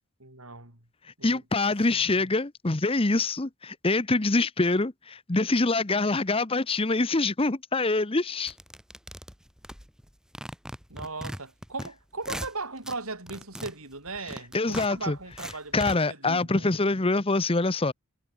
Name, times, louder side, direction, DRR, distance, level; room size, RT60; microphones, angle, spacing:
voice 1, 0.2-0.8 1.2-1.4 2.0-2.3 10.9-16.8, right 3 dB, 75° right, 7.7 m, -38 dB
voice 2, 1.2-8.5 14.5-15.2 15.7-17.9, left 3 dB, 25° left, 0.9 m, -25 dB
sound 1, 8.5-10.1 10.3-11.9 12.2-13.0 13.3-15.9, equal, 5° right, 5.4 m, -39 dB
head